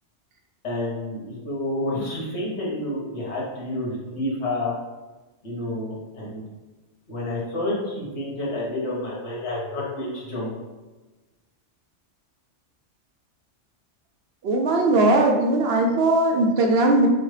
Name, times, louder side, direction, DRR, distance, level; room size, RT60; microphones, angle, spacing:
voice 1, 0.6-4.7 5.4-6.4 7.1-10.5, left 1 dB, 65° left, -6 dB, 1.6 m, -29 dB
voice 2, 14.4-17.1, right 2 dB, 65° right, 1 dB, 0.8 m, -19 dB
5.8 x 2.1 x 3.2 m, 1.2 s
omnidirectional pair, 1.2 m